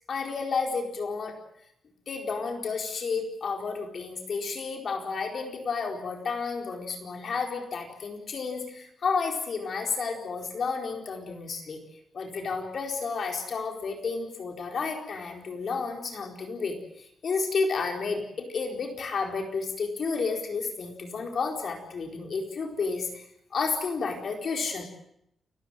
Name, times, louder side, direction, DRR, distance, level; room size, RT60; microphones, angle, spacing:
voice 1, 0.1-1.4 2.1-11.8 12.1-23.2 23.5-24.8, left 4 dB, 45° left, 3 dB, 4.4 m, -31 dB
29.0 x 14.5 x 9.1 m, 0.76 s
wide cardioid pair, 175°, 0 cm